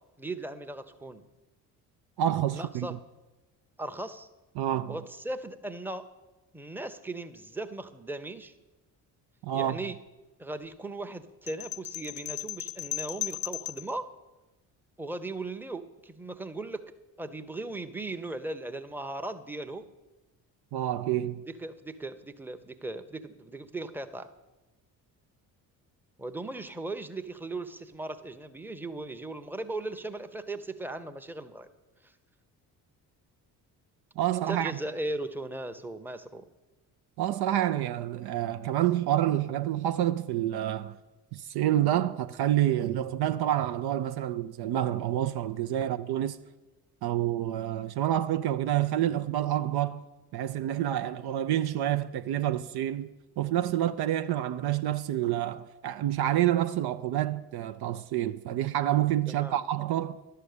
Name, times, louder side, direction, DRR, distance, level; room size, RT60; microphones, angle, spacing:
voice 1, 0.2-1.2 2.5-2.9 3.8-4.3 4.9-6.0 6.5-8.5 9.5-10.0 10.4-14.1 15.0-16.8 17.2-19.8 21.6-24.3 26.2-31.7 32.0-32.1 34.5-36.4 59.3-59.6, right 2 dB, 5° right, 0.8 m, -37 dB
voice 2, 2.2-2.9 4.6-5.0 9.4-9.8 20.7-21.4 34.2-34.7 37.2-41.0 41.3-46.4 47.0-50.0 50.3-53.1 53.4-60.2, right 12 dB, 55° right, 0.6 m, -28 dB
sound 1, 11.5-13.9, left 13 dB, 35° left, 0.4 m, -36 dB
11.5 x 6.7 x 6.7 m
hypercardioid pair, 50°, 48 cm